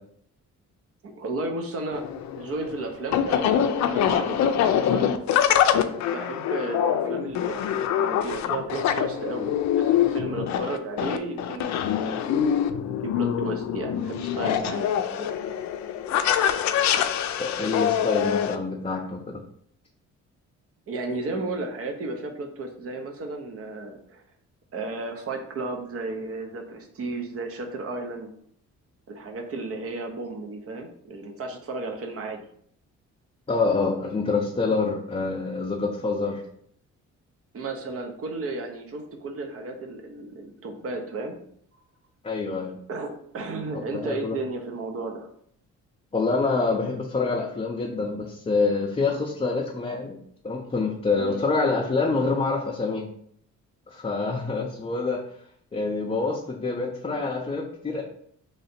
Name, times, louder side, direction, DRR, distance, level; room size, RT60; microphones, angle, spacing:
voice 1, 1.0-2.0 2.4-5.1 5.6-9.5 9.7-12.2 12.5-12.6 13.0-15.3 20.9-24.2 24.7-28.3 29.1-32.4 37.5-41.4 41.7-41.8 42.9-45.3 51.2-51.4, right 2 dB, 50° right, 4 dB, 0.8 m, -34 dB
sound 1, 1.9-18.5, left 9 dB, 65° left, 0.4 m, -24 dB
voice 2, 17.4-19.4 33.5-36.4 42.2-42.8 43.9-44.4 46.1-50.2 50.4-53.1 53.9-55.2 55.7-58.0, left 3 dB, 20° left, -1 dB, 0.6 m, -26 dB
3.2 x 2.7 x 4.2 m, 0.65 s
cardioid pair, 90°, 30 cm